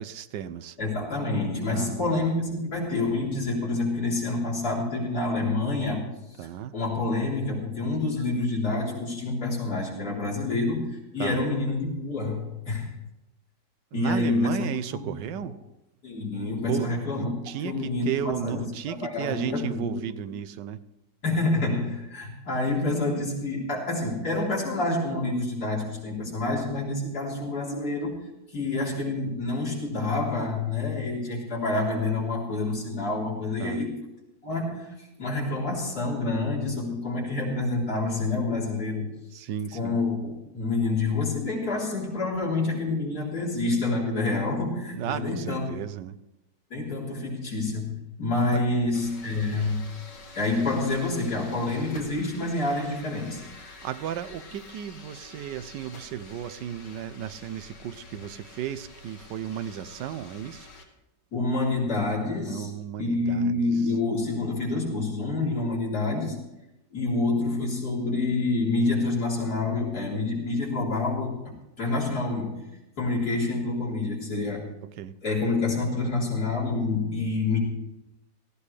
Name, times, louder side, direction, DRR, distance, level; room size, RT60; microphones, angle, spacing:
voice 1, 0.0-0.8 1.7-2.2 6.4-6.7 11.2-11.4 13.9-15.5 16.7-20.8 33.6-33.9 39.3-40.0 45.0-46.2 48.5-48.6 53.7-60.7 62.5-63.7 75.0-75.1, right 10 dB, 85° right, 14 dB, 1.3 m, -34 dB
voice 2, 0.8-6.0 6.4-6.5 6.7-12.9 13.9-15.1 15.4-15.5 16.0-17.3 17.6-20.0 21.2-28.2 28.5-33.9 34.4-39.1 39.7-45.6 46.7-49.8 50.3-53.4 61.3-62.7 63.0-66.4 66.9-71.4 71.8-72.6 73.0-74.7 75.2-77.6, left 2 dB, 60° left, -4 dB, 4.2 m, -27 dB
sound 1, 48.9-60.8, left 3 dB, 85° left, 2.8 m, -47 dB
18.0 x 15.5 x 3.3 m, 0.94 s
omnidirectional pair, 1.9 m